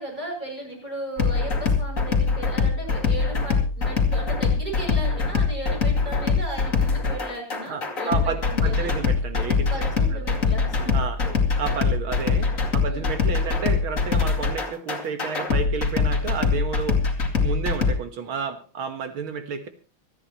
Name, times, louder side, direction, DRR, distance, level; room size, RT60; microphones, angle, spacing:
voice 1, 0.0-8.9 9.7-11.4 12.8-13.1, right 1 dB, 20° right, -1 dB, 7.0 m, -36 dB
sound 1, 1.2-17.9, left 4 dB, 40° left, 2.5 m, -23 dB
voice 2, 7.7-9.7 10.1-10.2 10.9-11.2 11.6-17.0 17.4-19.7, right 6 dB, 80° right, 8 dB, 2.3 m, -31 dB
25.5 x 9.8 x 3.1 m, 0.36 s
omnidirectional pair, 2.3 m